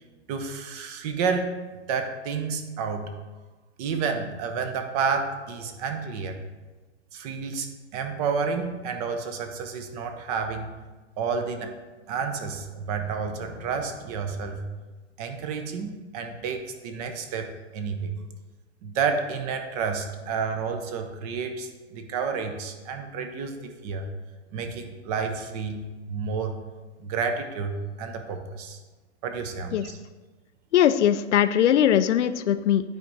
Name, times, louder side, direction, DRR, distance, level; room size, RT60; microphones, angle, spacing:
voice 1, 0.3-1.6 1.9-3.1 3.8-6.4 7.1-7.7 7.9-10.8 11.2-11.7 12.1-14.6 15.2-18.1 18.8-24.1 24.5-25.8 26.1-26.6 27.0-28.8 29.2-30.0, right 5 dB, 35° right, 6 dB, 0.7 m, -30 dB
voice 2, 30.7-32.8, left 10 dB, 70° left, 12 dB, 0.5 m, -20 dB
9.3 x 3.5 x 4.0 m, 1.2 s
hypercardioid pair, 125°, 37 cm